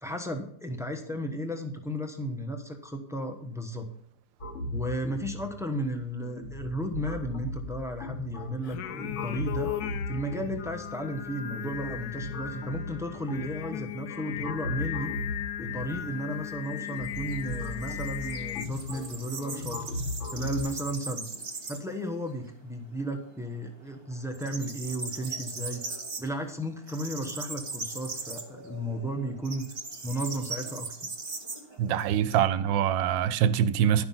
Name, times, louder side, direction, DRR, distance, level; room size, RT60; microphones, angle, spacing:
voice 1, 0.0-3.9 4.7-9.7 10.1-15.1 15.6-19.8 20.3-21.3 21.7-29.7 30.0-30.9, equal, 5° right, 0.7 m, -34 dB
sound 1, 4.4-20.6, left 2 dB, 45° left, 1.6 m, -38 dB
Singing, 8.6-18.7, left 12 dB, 70° left, 1.0 m, -37 dB
sound 2, 16.1-22.0 22.3-22.4 22.8-23.6 23.9-32.4, right 3 dB, 35° right, 1.6 m, -40 dB
voice 2, 31.8-34.1, right 9 dB, 90° right, 1.3 m, -24 dB
11.5 x 5.9 x 5.6 m
omnidirectional pair, 2.0 m